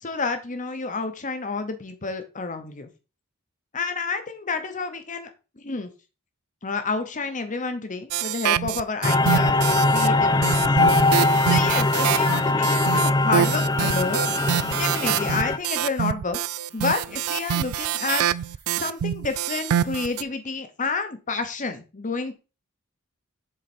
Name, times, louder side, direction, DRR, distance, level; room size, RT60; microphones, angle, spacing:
voice 1, 0.0-2.9 3.7-5.9 6.6-10.6 11.5-14.2 14.7-16.4 16.7-18.2 18.8-22.4, left 4 dB, 35° left, 9 dB, 1.0 m, -29 dB
sound 1, 8.1-10.1 10.4-20.2, right 10 dB, 75° right, 0.3 m, -26 dB
sound 2, 9.0-15.6, left 2 dB, 20° left, 0.3 m, -21 dB
7.5 x 4.1 x 4.3 m, 0.31 s
head